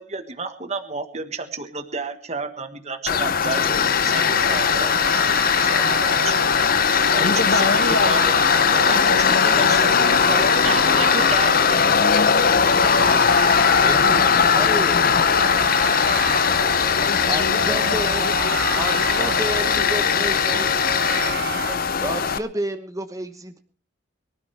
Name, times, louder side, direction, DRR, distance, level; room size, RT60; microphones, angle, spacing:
voice 1, 0.0-5.2 5.7-6.7 7.1-7.3 7.6-7.7 8.0-8.3 8.9-12.1, right 4 dB, 35° right, 7 dB, 1.5 m, -31 dB
Tools, 3.1-22.4, left 6 dB, 45° left, 0.7 m, -19 dB
sound 1, 3.8-21.8, right 5 dB, 55° right, 0.6 m, -31 dB
voice 2, 7.1-8.2 8.5-11.5 12.7-14.6 14.9-16.5 16.9-20.1, left 3 dB, 70° left, 9 dB, 1.5 m, -31 dB
sound 2, 12.5-19.8, right 1 dB, 85° right, 1.3 m, -40 dB
voice 3, 13.8-15.1 17.3-18.3 18.7-20.6 22.0-23.6, right 1 dB, 15° right, 7 dB, 1.1 m, -30 dB
23.5 x 12.5 x 3.4 m, 0.37 s
head